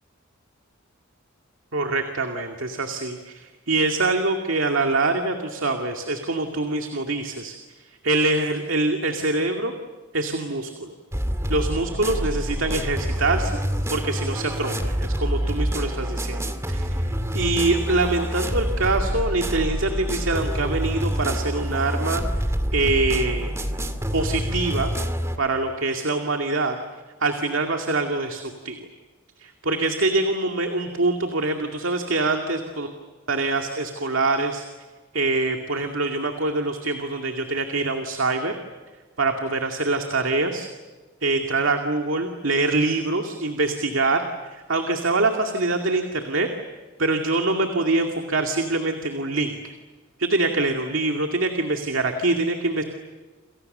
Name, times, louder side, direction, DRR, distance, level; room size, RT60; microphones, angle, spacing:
voice 1, 1.7-7.6 8.0-9.7 10.1-10.9 11.5-13.6 13.9-16.9 17.3-22.2 22.7-23.5 24.1-24.9 25.4-26.8 27.2-28.8 29.4-32.9 33.3-34.6 35.1-38.6 39.2-40.7 41.2-46.5 47.0-49.7 50.2-52.8, right 2 dB, 70° right, 4 dB, 2.3 m, -24 dB
sound 1, 11.1-25.4, equal, 15° right, 2.1 m, -27 dB
29.0 x 28.5 x 6.8 m, 1.3 s
head